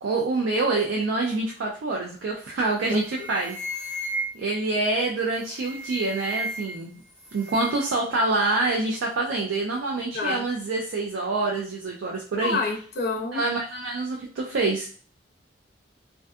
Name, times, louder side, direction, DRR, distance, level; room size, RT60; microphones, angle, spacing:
voice 1, 0.0-3.6 4.3-7.0 7.3-12.6 13.3-14.9, right 3 dB, 80° right, -1 dB, 0.4 m, -26 dB
sound 1, 2.4-2.7 3.0-4.6 5.4-6.9 7.2-8.0, right 1 dB, 30° right, 1.0 m, -34 dB
voice 2, 12.4-13.4, left 4 dB, 55° left, 1 dB, 0.5 m, -28 dB
2.5 x 2.3 x 2.3 m, 0.43 s
head